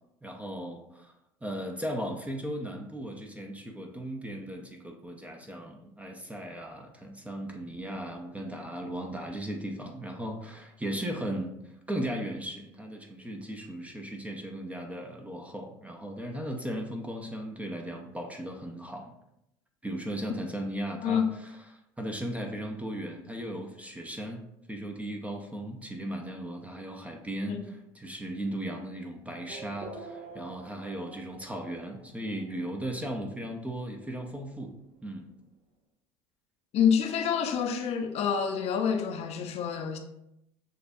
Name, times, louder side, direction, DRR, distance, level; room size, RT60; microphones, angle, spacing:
voice 1, 0.2-1.1 1.4-19.1 19.8-24.4 24.7-34.8 35.0-35.3, right 1 dB, 10° right, 2 dB, 0.6 m, -37 dB
Race car auto racing / Accelerating revving vroom, 29.5-35.6, right 4 dB, 50° right, 0.7 m, -49 dB
voice 2, 36.7-40.0, left 7 dB, 50° left, 5 dB, 0.6 m, -27 dB
6.5 x 2.2 x 2.6 m, 0.81 s
hypercardioid pair, 80°, 14 cm